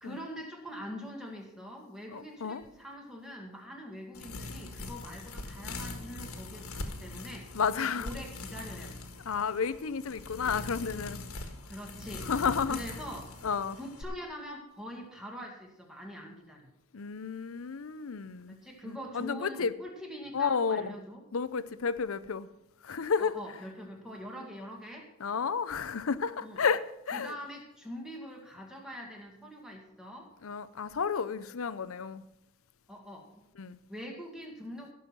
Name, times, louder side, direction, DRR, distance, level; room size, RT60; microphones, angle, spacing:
voice 1, 0.0-9.1 11.7-12.3 12.7-13.3 13.8-16.7 18.5-21.2 23.2-25.1 26.4-26.6 27.1-30.3 32.9-33.4 33.9-34.9, equal, 5° right, 2.1 m, -43 dB
voice 2, 2.1-2.6 7.5-8.1 9.2-11.2 12.2-12.8 13.4-13.8 16.9-18.6 18.8-19.7 20.3-20.9 21.3-22.5 22.8-23.4 25.2-27.3 30.4-32.2 33.6-33.8, left 5 dB, 70° left, 0.6 m, -31 dB
sound 1, 4.1-14.0, left 2 dB, 85° left, 1.6 m, -42 dB
16.5 x 6.3 x 6.0 m
head